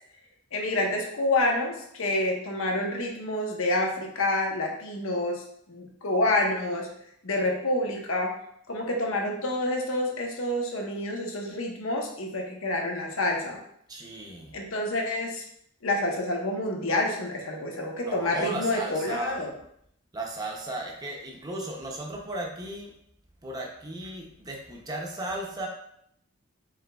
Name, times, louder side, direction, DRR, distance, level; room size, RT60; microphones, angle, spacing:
voice 1, 0.5-6.9 7.2-8.3 8.7-13.6 14.5-15.4 15.8-19.5, left 1 dB, 80° left, 1 dB, 0.8 m, -28 dB
voice 2, 13.9-14.6 18.0-19.4 20.1-22.9 23.4-25.7, right 2 dB, 20° right, 0 dB, 0.5 m, -35 dB
4.9 x 3.7 x 2.3 m, 0.70 s
head